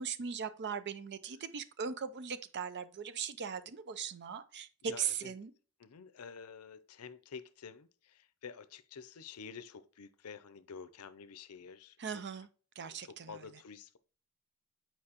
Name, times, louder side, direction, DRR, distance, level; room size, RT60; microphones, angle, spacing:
voice 1, 0.0-5.5 12.0-12.5 12.8-13.5, right 6 dB, 50° right, 0.5 m, -39 dB
voice 2, 4.8-5.3 5.8-12.0 13.0-14.0, left 6 dB, 75° left, 0.5 m, -49 dB
8.6 x 4.5 x 2.9 m
head